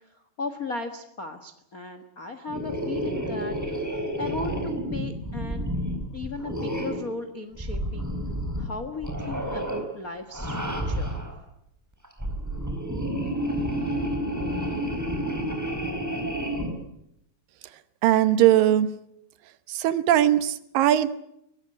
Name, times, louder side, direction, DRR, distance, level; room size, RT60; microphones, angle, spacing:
voice 1, 0.0-3.6 4.1-5.7 6.1-8.1 8.6-11.1, left 3 dB, 75° left, 7 dB, 0.8 m, -36 dB
sound 1, 2.5-7.1 7.6-8.7 9.0-9.8 10.3-11.3 12.0-16.7, equal, 5° right, 3.8 m, -30 dB
voice 2, 18.0-18.9 19.7-21.2, right 12 dB, 75° right, 13 dB, 2.6 m, -20 dB
22.5 x 18.0 x 9.7 m, 0.80 s
omnidirectional pair, 4.2 m